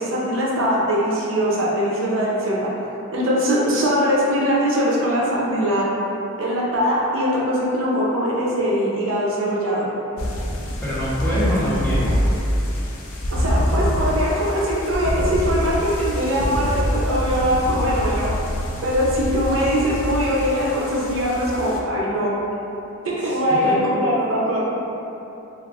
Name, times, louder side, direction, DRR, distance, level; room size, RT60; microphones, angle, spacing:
voice 1, 0.0-2.7 3.1-5.9 6.4-9.9 13.3-18.3 18.8-22.3 23.0-24.6, equal, 65° right, -5 dB, 0.5 m, -21 dB
sound 1, 10.2-21.8, equal, 70° left, 0.4 m, -25 dB
voice 2, 10.8-12.2 23.3-23.8, equal, 10° left, -11 dB, 0.6 m, -25 dB
2.4 x 2.3 x 3.3 m, 2.9 s
head